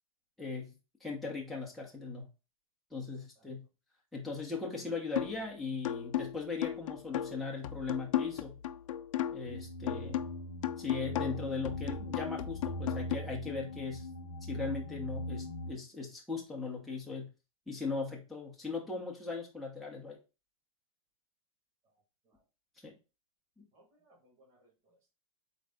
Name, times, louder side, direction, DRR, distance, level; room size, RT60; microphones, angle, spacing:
voice 1, 0.4-0.7 1.0-2.3 2.9-3.7 4.1-8.6 9.3-10.2 10.8-14.1 14.4-17.3 17.7-20.2 22.8-23.0 23.6-23.7, left 4 dB, ahead, -3 dB, 1.1 m, -39 dB
voice 2, 3.1-3.5 21.8-22.4 23.7-25.1, right 1 dB, 30° right, -4 dB, 2.2 m, -68 dB
sound 1, 5.2-5.5 5.8-9.5 9.9-13.2, left 11 dB, 65° left, 0.4 m, -36 dB
sound 2, 9.4-15.7, left 1 dB, 45° left, 0.8 m, -41 dB
4.0 x 3.2 x 3.6 m, 0.29 s
hypercardioid pair, 130°, 18 cm